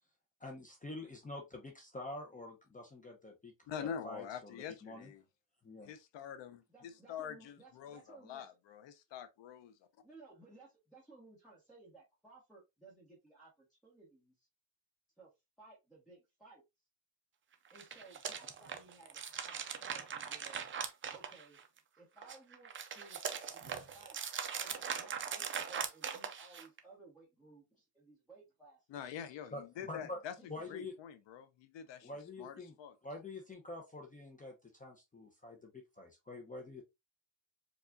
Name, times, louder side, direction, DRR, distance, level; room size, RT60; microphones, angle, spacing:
voice 1, 0.4-3.5 3.8-4.6 4.8-5.1 5.6-5.9 29.5-30.2 30.5-30.9 32.0-32.7 33.0-36.8, left 2 dB, 15° left, 0.6 m, -47 dB
voice 2, 3.7-5.2 5.8-9.7 28.9-30.3 30.7-32.1 32.4-32.9, left 8 dB, 65° left, 0.6 m, -45 dB
voice 3, 6.7-8.5 10.0-14.5 15.2-15.3 15.6-16.6 17.7-20.6 21.1-21.6 21.9-24.2 24.5-29.0 30.4-30.7, right 3 dB, ahead, 1.1 m, -59 dB
sound 1, 17.7-21.8 22.2-26.8, right 7 dB, 30° right, 0.4 m, -41 dB
4.8 x 2.4 x 2.4 m
cardioid pair, 150°, 49 cm